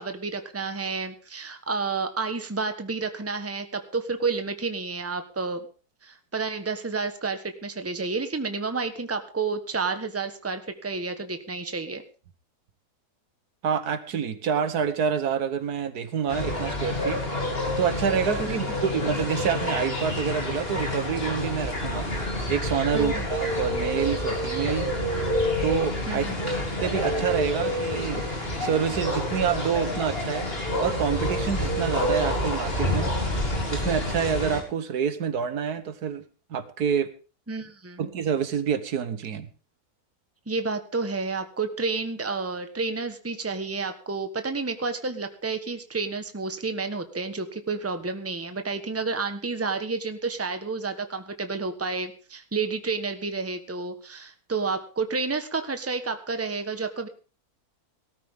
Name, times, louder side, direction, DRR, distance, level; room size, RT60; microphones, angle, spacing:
voice 1, 0.0-5.7 6.0-12.0 18.5-18.8 22.9-23.2 26.1-26.5 37.5-38.1 40.5-57.1, right 4 dB, 10° right, 8 dB, 1.2 m, -30 dB
voice 2, 13.6-17.2 17.8-22.1 22.5-24.9 25.6-26.3 26.8-28.3 28.6-30.5 30.8-33.1 33.7-36.2 36.5-37.1 38.0-39.5, right 7 dB, 80° right, 12 dB, 1.7 m, -27 dB
sound 1, 16.3-34.6, left 1 dB, 40° left, 3.7 m, -28 dB
18.5 x 13.0 x 3.7 m, 0.36 s
omnidirectional pair, 1.6 m